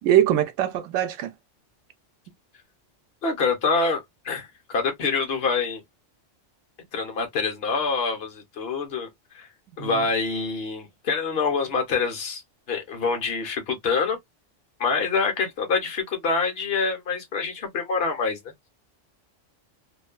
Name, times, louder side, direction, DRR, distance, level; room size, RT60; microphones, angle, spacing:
voice 1, 0.0-1.3 9.8-10.0, right 11 dB, 90° right, 1.0 m, -22 dB
voice 2, 3.2-5.8 6.9-9.1 9.3-9.5 9.8-12.4 12.7-14.2 14.8-18.4, left 4 dB, 55° left, 1.1 m, -26 dB
2.9 x 2.3 x 2.2 m
omnidirectional pair, 1.3 m